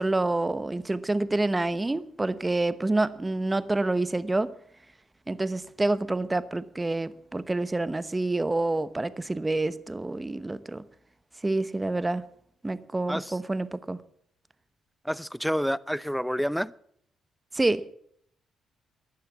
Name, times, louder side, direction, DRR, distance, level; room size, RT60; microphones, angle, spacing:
voice 1, 0.0-4.5 5.3-10.8 11.4-12.2 12.6-14.0 17.5-17.8, right 2 dB, 15° right, 1.0 m, -27 dB
voice 2, 13.1-13.4 15.0-16.7, equal, ahead, 0.6 m, -29 dB
16.5 x 11.0 x 7.4 m
cardioid pair, 90°, 0 cm